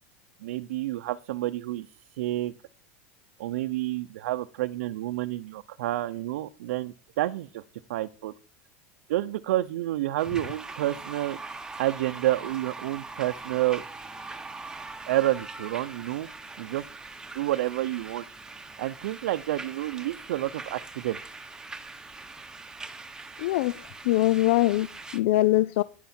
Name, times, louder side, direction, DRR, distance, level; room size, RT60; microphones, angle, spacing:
voice 1, 0.4-1.9 2.1-2.5 3.4-7.6 7.9-8.3 9.1-11.4 11.8-13.8 15.1-16.3 16.6-16.9 17.3-18.2 18.8-21.2, right 15 dB, 85° right, 0.7 m, -29 dB
sound 1, 10.2-25.2, right 3 dB, 10° right, 1.2 m, -42 dB
voice 2, 23.4-24.9 25.1-25.8, left 16 dB, 70° left, 0.5 m, -23 dB
10.5 x 10.5 x 4.4 m
supercardioid pair, 130°, 7 cm